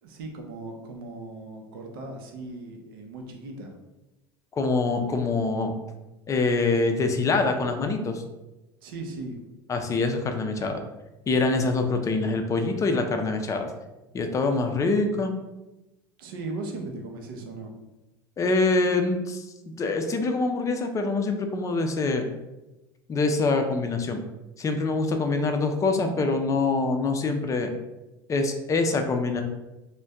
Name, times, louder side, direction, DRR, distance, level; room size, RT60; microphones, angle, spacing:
voice 1, 0.0-3.7 8.8-9.4 16.2-17.7, right 2 dB, 75° right, 2 dB, 0.6 m, -37 dB
voice 2, 4.5-5.7 6.3-8.2 9.7-10.8 11.3-13.7 14.1-15.4 18.4-22.2 23.1-24.2 24.6-27.7 28.3-29.4, left 3 dB, 25° left, 5 dB, 0.4 m, -25 dB
2.6 x 2.2 x 3.3 m, 1.0 s
hypercardioid pair, 90°, 12 cm